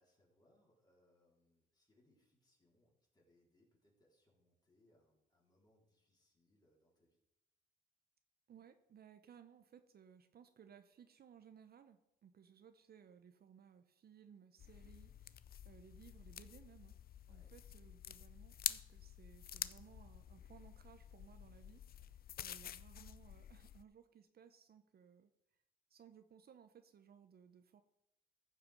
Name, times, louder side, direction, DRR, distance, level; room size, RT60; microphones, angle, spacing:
voice 1, 0.0-7.2 17.3-17.5, left 1 dB, 20° left, -3 dB, 4.1 m, -75 dB
voice 2, 8.5-17.0 17.3-25.3 25.9-27.8, right 8 dB, 50° right, 9 dB, 0.8 m, -62 dB
sound 1, 14.6-23.8, left 10 dB, 50° left, 0.5 m, -48 dB
14.5 x 5.8 x 5.1 m, 0.86 s
cardioid pair, 90°, 20 cm